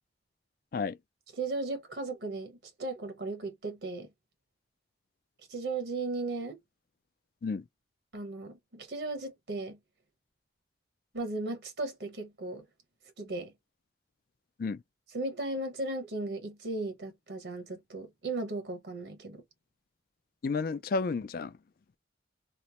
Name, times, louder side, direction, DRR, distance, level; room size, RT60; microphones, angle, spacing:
voice 1, 1.4-4.1 5.5-6.6 8.1-9.8 11.1-12.6 13.2-13.5 15.1-19.4, right 2 dB, 80° right, 1.2 m, -36 dB
voice 2, 20.4-21.6, left 4 dB, 55° left, 0.4 m, -31 dB
3.1 x 2.0 x 2.8 m
head